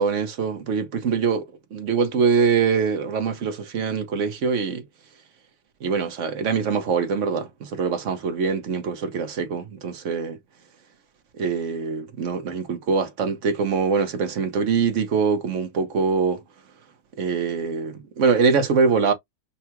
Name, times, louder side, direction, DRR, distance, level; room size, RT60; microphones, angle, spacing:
voice 1, 0.0-1.5 1.7-4.8 5.8-10.4 11.4-16.4 17.2-19.1, right 5 dB, 55° right, 1.2 m, -23 dB
5.6 x 2.4 x 2.9 m
omnidirectional pair, 1.7 m